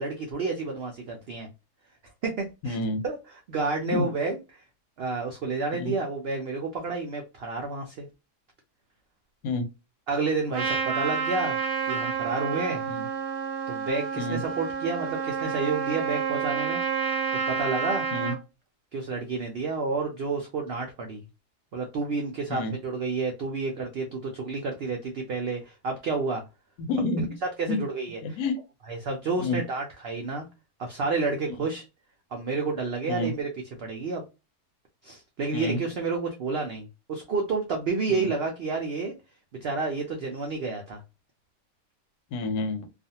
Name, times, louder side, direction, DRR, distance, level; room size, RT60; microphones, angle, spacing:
voice 1, 0.0-1.5 2.2-2.8 3.0-3.2 3.5-4.6 5.0-8.1 10.1-11.6 11.9-12.9 13.7-16.8 17.5-18.1 18.9-21.2 21.7-26.4 27.6-28.4 28.9-30.5 30.8-31.8 32.3-33.5 33.8-34.2 35.0-39.1 39.6-41.0, right 4 dB, 80° right, 0.5 m, -30 dB
voice 2, 2.6-3.0 3.8-4.1 5.7-5.9 9.4-9.7 12.9-13.1 14.2-14.4 18.1-18.3 22.5-22.7 26.8-27.4 27.7-27.8 28.2-28.6 29.4-29.6 33.1-33.3 35.5-35.8 38.1-38.3 42.3-42.9, left 2 dB, 90° left, 1.1 m, -29 dB
Trumpet, 10.5-18.4, right 6 dB, 60° right, 0.8 m, -29 dB
2.4 x 2.4 x 2.7 m
omnidirectional pair, 1.7 m